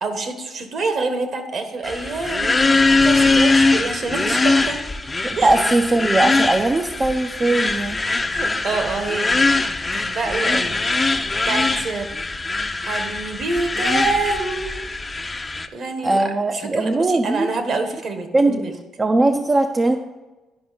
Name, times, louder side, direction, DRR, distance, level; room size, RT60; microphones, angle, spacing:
voice 1, 0.0-4.8 5.4-5.5 8.3-9.4 9.9-10.7 11.5-12.1 12.8-14.8 15.7-18.8, right 3 dB, 55° right, 7 dB, 1.4 m, -26 dB
sound 1, 1.8-15.7, left 3 dB, 20° left, 0.6 m, -21 dB
voice 2, 5.2-8.0 16.0-17.5 18.3-18.6 19.0-20.0, right 2 dB, 25° right, 5 dB, 0.5 m, -19 dB
10.5 x 5.3 x 5.1 m, 1.1 s
cardioid pair, 85°, 0 cm